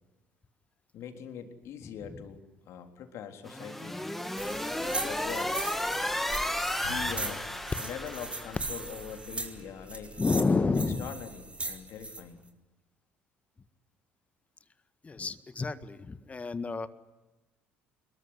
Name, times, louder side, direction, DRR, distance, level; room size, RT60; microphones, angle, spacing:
voice 1, 0.9-4.1 4.8-5.6 6.8-7.5 7.8-10.5 11.0-12.5, left 8 dB, 55° left, 6 dB, 3.8 m, -42 dB
sound 1, 3.4-9.0, left 1 dB, 5° left, 2.6 m, -33 dB
sound 2, 4.4-12.2, right 3 dB, 20° right, 4.6 m, -39 dB
Drum, 6.8-8.0, left 6 dB, 75° left, 2.9 m, -43 dB
voice 2, 10.2-11.1 15.0-16.9, left 4 dB, 25° left, 13 dB, 1.7 m, -29 dB
26.5 x 22.5 x 9.9 m, 1.1 s
figure-of-eight pair, 55°, 6 cm